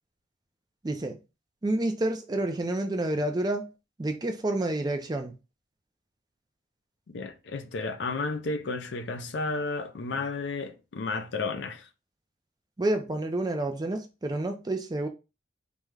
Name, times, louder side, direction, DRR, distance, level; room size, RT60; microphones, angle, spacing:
voice 1, 0.8-1.2 1.6-3.7 4.0-5.3 12.8-15.1, right 1 dB, 20° right, 0.4 m, -29 dB
voice 2, 7.1-11.9, left 3 dB, 75° left, 0.5 m, -32 dB
3.5 x 2.1 x 3.2 m
head